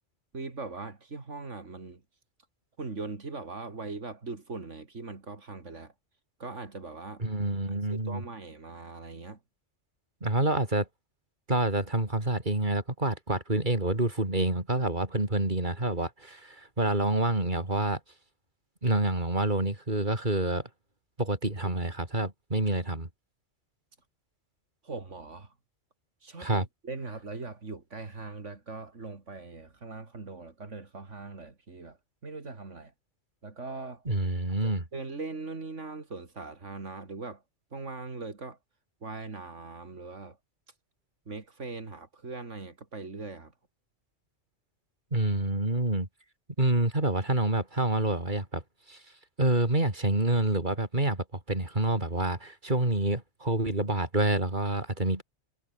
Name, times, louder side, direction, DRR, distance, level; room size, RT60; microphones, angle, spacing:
voice 1, 0.3-2.0 2.8-5.9 6.4-7.2 7.7-9.4 24.8-25.5 26.2-32.0 32.2-32.9 33.4-34.0 34.6-37.4 37.7-38.6 39.0-40.4 41.3-43.5, right 3 dB, 90° right, 3.3 m, -40 dB
voice 2, 7.2-8.2 10.2-10.9 11.5-18.0 18.8-20.7 21.2-23.1 26.4-26.7 34.1-34.8 45.1-46.1 46.6-48.6 48.9-49.0 49.4-55.2, right 2 dB, 40° right, 4.7 m, -27 dB
omnidirectional pair, 1.2 m